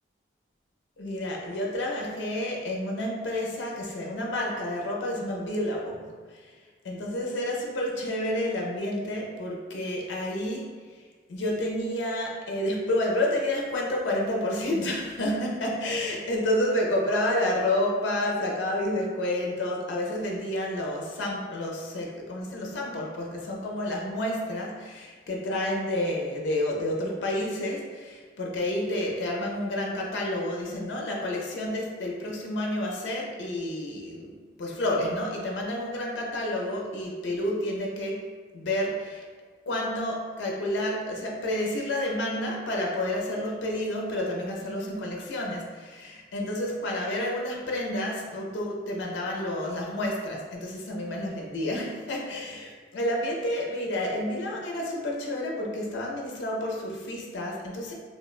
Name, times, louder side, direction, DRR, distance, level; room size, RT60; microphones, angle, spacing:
voice 1, 1.0-6.5 6.8-10.7 10.9-11.0 11.3-38.2 38.5-39.3 39.7-57.9, left 1 dB, 80° left, -1 dB, 0.4 m, -30 dB
3.1 x 2.1 x 2.3 m, 1.5 s
head